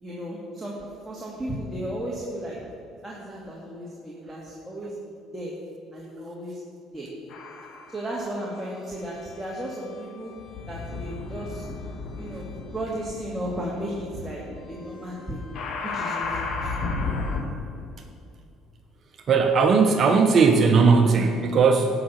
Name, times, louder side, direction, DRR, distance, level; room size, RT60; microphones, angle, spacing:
voice 1, 0.0-2.6 3.0-5.5 5.9-6.6 6.9-7.1 7.9-10.3 10.7-11.6 12.2-14.4 14.7-15.4 15.9-16.7, right 1 dB, 10° right, -5 dB, 2.2 m, -34 dB
sound 1, 7.3-8.1 8.9-17.4, left 4 dB, 55° left, 1.8 m, -34 dB
voice 2, 19.3-21.9, right 5 dB, 50° right, 5 dB, 0.9 m, -18 dB
11.0 x 5.9 x 7.4 m, 2.6 s
supercardioid pair, 70°, 0 cm